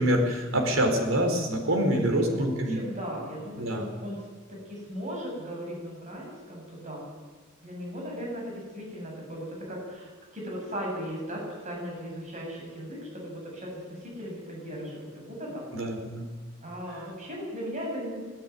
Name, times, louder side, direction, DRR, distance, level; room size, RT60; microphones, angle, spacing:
voice 1, 0.0-2.8 3.5-3.9 15.7-16.3 16.9-17.1, right 1 dB, 80° right, 2 dB, 4.4 m, -26 dB
voice 2, 1.7-4.2 4.5-7.0 7.6-15.6 16.6-18.2, equal, 35° right, -2 dB, 7.7 m, -37 dB
18.5 x 15.0 x 9.7 m, 1.4 s
head